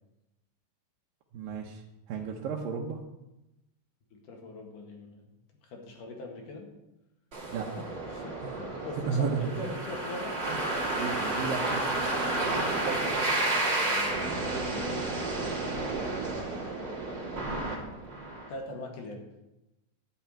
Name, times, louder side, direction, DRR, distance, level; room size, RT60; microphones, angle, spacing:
voice 1, 1.3-1.8 2.1-3.0 7.5-7.7 8.4-8.6 9.1-9.7 10.5-10.6 10.9-11.8, right 6 dB, 80° right, -1 dB, 2.6 m, -33 dB
voice 2, 4.1-5.3 5.6-6.7 7.7-10.4 12.9-13.0 13.7-16.7 18.5-19.2, left 2 dB, 70° left, 1 dB, 3.4 m, -42 dB
sound 1, 7.3-18.5, right 2 dB, 35° right, 2.9 m, -31 dB
12.0 x 5.8 x 8.7 m, 0.95 s
omnidirectional pair, 3.9 m